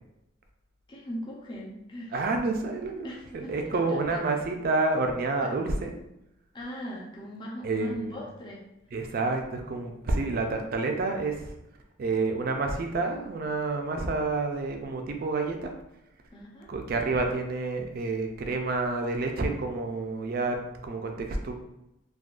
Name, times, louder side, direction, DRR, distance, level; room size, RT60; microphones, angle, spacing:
voice 1, 0.9-2.2 3.0-3.5 3.9-4.2 5.4-5.5 6.5-8.6 16.3-16.7, equal, 25° left, -4 dB, 0.5 m, -39 dB
voice 2, 2.1-3.1 3.3-5.9 7.6-8.2 8.9-11.5 12.0-15.7 16.7-20.6 20.8-21.5, right 3 dB, 45° right, 3 dB, 0.4 m, -29 dB
3.6 x 2.3 x 2.4 m, 0.88 s
head